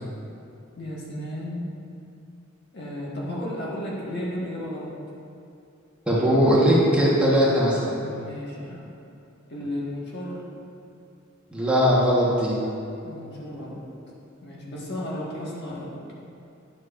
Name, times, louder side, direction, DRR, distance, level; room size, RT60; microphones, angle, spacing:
voice 1, 0.8-1.7 2.7-4.9 8.0-8.9 9.5-10.4 13.0-13.8 14.4-15.9, left 1 dB, 55° left, -5 dB, 1.5 m, -33 dB
voice 2, 6.1-7.8 11.5-12.6, equal, 5° right, -7 dB, 1.2 m, -19 dB
10.0 x 7.4 x 2.5 m, 2.6 s
head